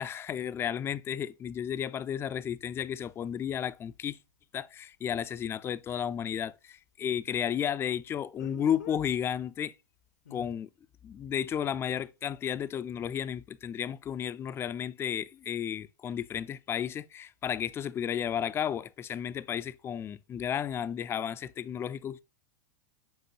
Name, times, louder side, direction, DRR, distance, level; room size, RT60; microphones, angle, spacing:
voice 1, 0.0-4.2 4.5-9.7 10.3-10.7 11.0-22.2, left 9 dB, 25° left, 0.5 m, -33 dB
Speech, 3.1-3.2 8.4-9.0 10.3-10.5, left 8 dB, 75° left, 0.9 m, -47 dB
7.4 x 5.4 x 2.8 m
hypercardioid pair, 95°, 9 cm